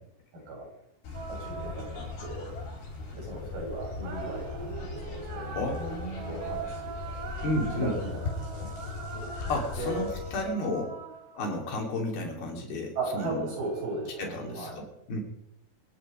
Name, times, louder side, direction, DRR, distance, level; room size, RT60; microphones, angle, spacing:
voice 1, 0.3-0.7 1.3-2.6 3.1-5.6 6.2-6.9 7.7-8.2 8.5-8.7 9.8-10.1 13.0-14.8, right 2 dB, 65° right, -3 dB, 9.2 m, -36 dB
sound 1, 1.0-10.4, left 4 dB, 90° left, 6.0 m, -38 dB
call to prayer, 1.1-2.8 4.0-11.9 13.1-14.7, right 5 dB, 80° right, 4.2 m, -42 dB
voice 2, 5.5-6.4 7.4-8.0 9.5-11.0 11.3-13.5 14.2-15.2, left 1 dB, 65° left, 0 dB, 4.9 m, -32 dB
26.0 x 10.0 x 5.0 m, 0.80 s
omnidirectional pair, 4.8 m